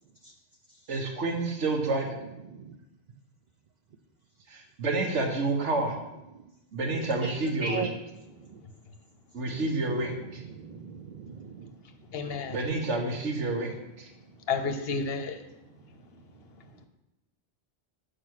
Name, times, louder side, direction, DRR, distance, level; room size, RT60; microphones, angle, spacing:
voice 1, 0.9-2.2 4.5-6.0 6.7-7.9 9.3-10.4 12.5-14.1, right 2 dB, 85° right, 2 dB, 1.5 m, -29 dB
voice 2, 10.4-11.7, right 5 dB, 60° right, 6 dB, 0.4 m, -38 dB
voice 3, 12.1-12.6 14.5-15.4, left 4 dB, 60° left, 7 dB, 0.9 m, -31 dB
5.8 x 5.0 x 6.3 m, 0.95 s
omnidirectional pair, 1.2 m